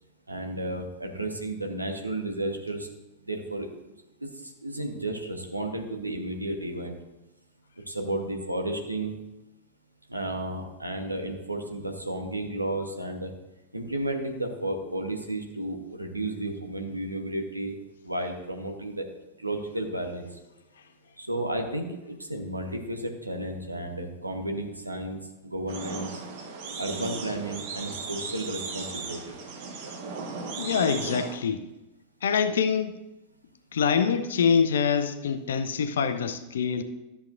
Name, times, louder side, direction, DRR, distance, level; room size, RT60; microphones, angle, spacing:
voice 1, 0.3-2.9 3.2-3.7 4.2-6.9 7.9-9.2 10.1-13.3 13.7-17.8 18.0-19.1 19.4-20.3 21.2-26.1 26.8-29.2, right 1 dB, 85° right, 3 dB, 1.2 m, -32 dB
sound 1, 25.7-31.4, right 4 dB, 50° right, 1.2 m, -37 dB
voice 2, 30.6-31.6 32.2-33.0 33.7-36.8, left 6 dB, 65° left, 10 dB, 0.6 m, -25 dB
13.0 x 7.0 x 2.6 m, 0.97 s
figure-of-eight pair, 90°, 0 cm